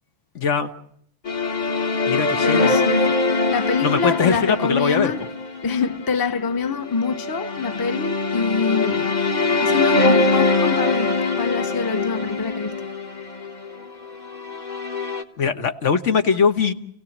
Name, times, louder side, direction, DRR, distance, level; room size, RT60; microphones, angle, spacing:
voice 1, 0.3-0.7 2.0-2.8 3.8-5.1 15.4-16.7, left 6 dB, 75° left, 1.5 m, -21 dB
sound 1, 1.2-15.2, left 3 dB, 35° left, 1.3 m, -23 dB
voice 2, 2.4-3.1 3.5-5.3 5.6-9.1 9.6-12.9, left 5 dB, 20° left, 0.8 m, -25 dB
30.0 x 17.0 x 7.3 m
omnidirectional pair, 1.3 m